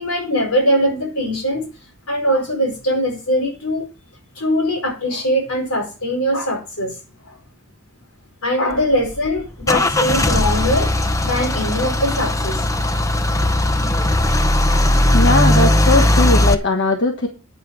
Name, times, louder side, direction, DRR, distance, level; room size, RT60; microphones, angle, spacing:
voice 1, 0.0-1.7 2.1-3.9 4.3-6.9 8.4-10.9 11.2-12.6, equal, 75° left, 2 dB, 4.6 m, -21 dB
Car / Engine starting / Idling, 8.7-16.5, left 1 dB, 15° left, 0.6 m, -17 dB
voice 2, 15.1-17.3, left 2 dB, 55° left, 3 dB, 1.3 m, -18 dB
9.4 x 8.3 x 4.7 m, 0.32 s
head